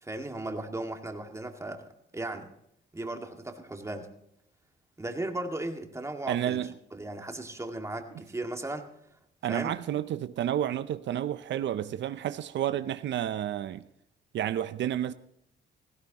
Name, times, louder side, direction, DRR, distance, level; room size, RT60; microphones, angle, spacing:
voice 1, 0.0-2.5 2.9-4.1 5.0-6.6 6.9-8.9 9.5-9.8, right 2 dB, 15° right, 2.0 m, -36 dB
voice 2, 6.3-6.7 9.4-13.8 14.3-15.1, right 11 dB, 65° right, 0.6 m, -30 dB
17.0 x 15.5 x 3.0 m
cardioid pair, 90°, 20 cm